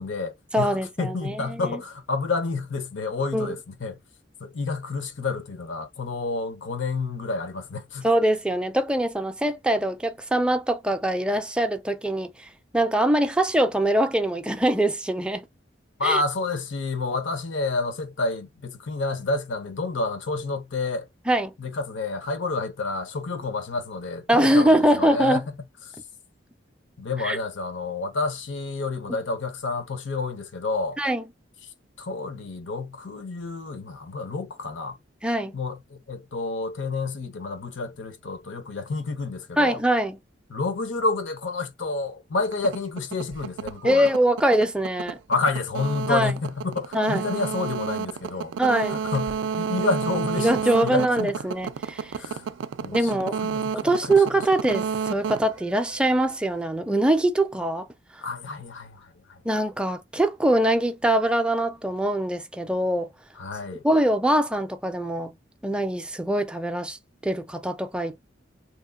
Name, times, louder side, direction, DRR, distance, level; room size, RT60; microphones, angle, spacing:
voice 1, 0.0-4.0 4.4-8.1 16.0-21.1 21.6-25.5 27.0-31.0 32.0-35.0 35.5-39.8 40.5-44.1 45.3-48.6 48.9-51.4 52.2-52.5 52.8-54.2 58.2-59.4 63.4-63.8, left 3 dB, 85° left, 0.7 m, -29 dB
voice 2, 0.5-1.8 3.3-3.5 8.0-12.5 12.7-15.5 16.0-16.2 21.3-21.5 24.3-25.4 27.2-27.4 31.0-31.2 35.2-35.6 39.6-40.2 43.8-45.2 46.1-46.4 46.9-47.2 48.6-49.0 50.4-52.2 52.9-53.4 53.7-57.9 59.4-63.1 63.8-65.3 65.6-67.0 67.2-68.2, right 1 dB, 5° right, 0.4 m, -23 dB
sound 1, 42.5-56.4, right 7 dB, 75° right, 0.3 m, -31 dB
2.8 x 2.1 x 2.3 m
head